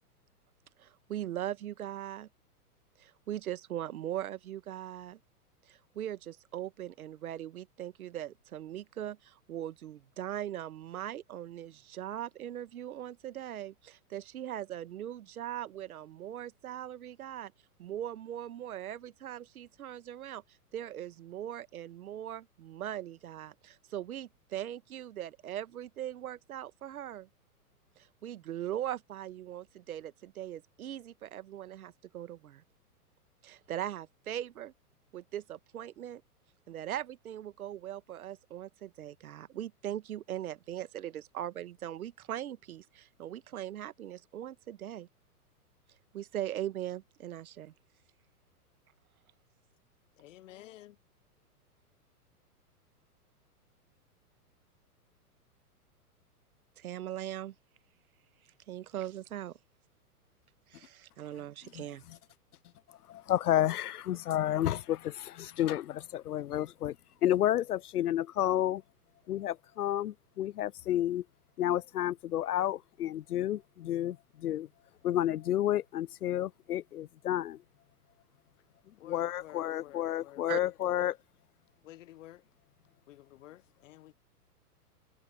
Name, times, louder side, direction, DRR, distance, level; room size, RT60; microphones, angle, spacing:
voice 1, 0.8-2.3 3.0-5.2 5.9-17.5 17.8-20.4 20.7-27.3 28.2-32.6 33.4-34.7 35.1-36.2 36.7-45.1 46.1-47.7 56.8-57.5 58.7-59.5 60.7-62.0 80.5-80.6, right 11 dB, 65° right, 1.5 m, -40 dB
voice 2, 50.2-51.0 79.0-81.1 81.9-82.4 83.1-84.1, left 14 dB, 55° left, 1.1 m, -52 dB
voice 3, 63.1-67.0 67.2-68.8 69.3-71.2 71.6-74.7 75.0-77.6 79.0-81.2, left 12 dB, 75° left, 0.7 m, -31 dB
hypercardioid pair, 115°, 46 cm